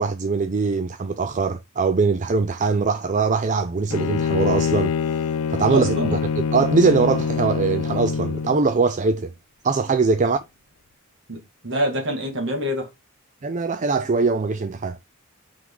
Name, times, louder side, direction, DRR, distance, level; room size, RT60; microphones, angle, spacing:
voice 1, 0.0-9.3 9.6-10.4 13.4-15.0, right 4 dB, 35° right, 0.4 m, -22 dB
Bowed string instrument, 3.9-8.7, left 6 dB, 80° left, 0.4 m, -24 dB
voice 2, 5.7-6.2 10.2-10.3 11.3-12.9, equal, 60° right, 2.4 m, -26 dB
5.9 x 4.6 x 3.9 m
head